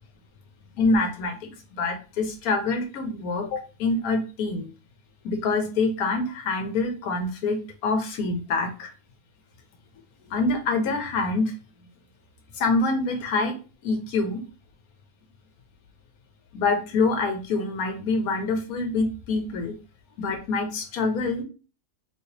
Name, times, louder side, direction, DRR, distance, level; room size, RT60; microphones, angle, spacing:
voice 1, 0.8-4.7 5.2-8.9 10.3-11.5 12.5-13.6 13.8-14.4 16.5-19.7 20.2-21.4, left 3 dB, 90° left, 4 dB, 1.3 m, -26 dB
3.3 x 2.8 x 2.8 m, 0.34 s
omnidirectional pair, 1.5 m